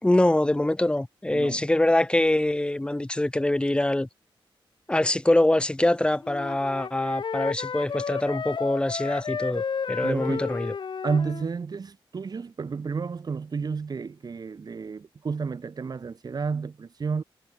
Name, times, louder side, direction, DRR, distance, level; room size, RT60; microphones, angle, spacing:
voice 1, 0.0-4.1 4.9-10.7, left 1 dB, 10° left, 2.5 m, -24 dB
voice 2, 1.3-1.6 10.0-10.5 11.0-17.2, right 5 dB, 45° right, 3.8 m, -31 dB
Wind instrument woodwind instrument, 6.2-11.5, left 6 dB, 55° left, 4.7 m, -32 dB
wide cardioid pair, 130°, 9 cm